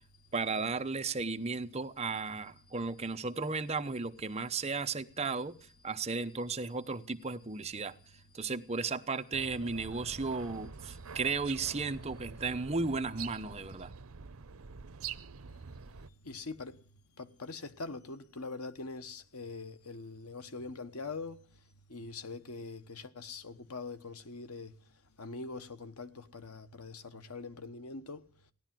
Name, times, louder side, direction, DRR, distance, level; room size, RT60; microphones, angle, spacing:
voice 1, 0.3-5.5 5.8-7.9 8.3-13.9, right 4 dB, 30° right, 0.8 m, -34 dB
sound 1, 9.3-16.1, right 6 dB, 75° right, 0.8 m, -46 dB
voice 2, 16.2-16.8 17.2-21.4 21.9-24.7 25.2-28.2, left 3 dB, 90° left, 1.3 m, -43 dB
16.5 x 11.5 x 7.5 m
head